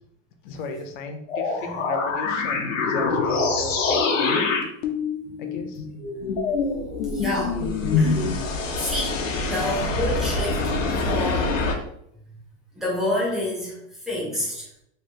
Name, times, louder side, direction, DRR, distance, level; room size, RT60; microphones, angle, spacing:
voice 1, 0.4-4.5 5.4-5.8, left 3 dB, 40° left, 5 dB, 0.6 m, -35 dB
sound 1, 1.3-11.7, left 4 dB, 85° left, 0.9 m, -25 dB
voice 2, 7.1-7.6 8.0-8.2 8.8-11.6 12.8-13.8 14.1-14.7, left 1 dB, ahead, -6 dB, 0.6 m, -28 dB
3.1 x 2.5 x 4.3 m, 0.72 s
supercardioid pair, 165°, 37 cm